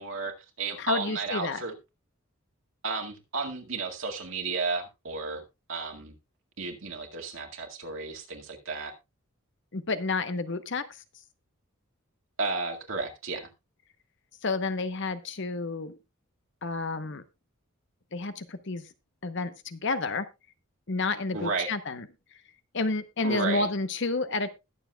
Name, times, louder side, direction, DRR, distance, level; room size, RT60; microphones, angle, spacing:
voice 1, 0.0-1.7 2.8-5.4 5.7-6.2 6.6-8.9 12.4-13.5 21.3-21.7 23.2-23.7, right 4 dB, 65° right, 2 dB, 2.0 m, -33 dB
voice 2, 0.8-1.6 9.7-11.0 14.4-16.0 16.6-17.2 18.1-18.8 19.2-20.3 20.9-22.1 22.7-24.5, left 3 dB, 55° left, 11 dB, 0.9 m, -30 dB
20.5 x 7.1 x 2.3 m, 0.24 s
head